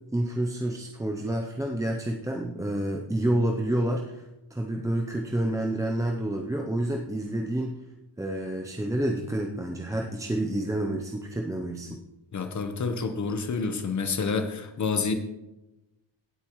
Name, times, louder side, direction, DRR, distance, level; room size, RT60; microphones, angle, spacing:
voice 1, 0.1-4.2 4.5-7.8 8.2-12.0, right 1 dB, 5° right, 1 dB, 0.6 m, -29 dB
voice 2, 12.3-15.2, left 4 dB, 35° left, 8 dB, 1.0 m, -28 dB
17.5 x 8.4 x 3.1 m, 0.97 s
wide cardioid pair, 165°, 47 cm